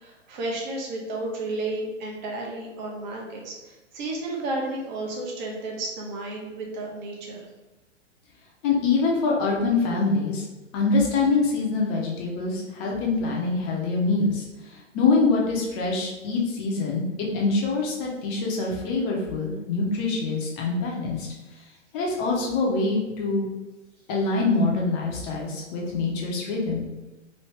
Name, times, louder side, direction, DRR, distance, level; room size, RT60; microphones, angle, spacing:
voice 1, 0.0-7.5, right 2 dB, 35° right, -1 dB, 0.9 m, -32 dB
voice 2, 8.6-10.4 10.7-21.3 21.9-23.5 24.1-26.8, left 3 dB, 25° left, -2 dB, 0.6 m, -25 dB
3.1 x 2.7 x 3.2 m, 1.1 s
figure-of-eight pair, 115°, 38 cm